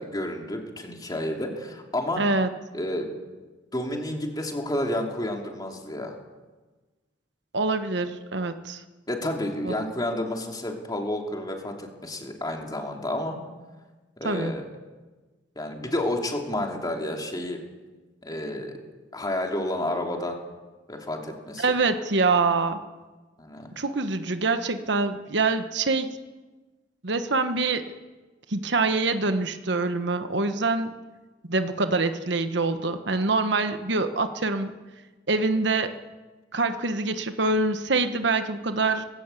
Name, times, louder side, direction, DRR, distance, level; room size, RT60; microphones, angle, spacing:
voice 1, 0.0-2.2 2.7-3.2 3.7-6.2 9.1-13.4 14.2-14.6 15.6-17.6 18.2-18.7 19.1-20.4 20.9-21.6 23.4-23.7, left 1 dB, 20° left, 2 dB, 3.0 m, -30 dB
voice 2, 2.2-2.5 7.5-8.8 9.6-9.7 14.2-14.5 21.6-22.8 23.8-26.1 27.0-27.9 28.5-30.9 31.4-34.7 35.3-35.9 36.5-39.0, right 3 dB, 65° right, 9 dB, 1.2 m, -25 dB
19.0 x 16.5 x 8.4 m, 1.3 s
head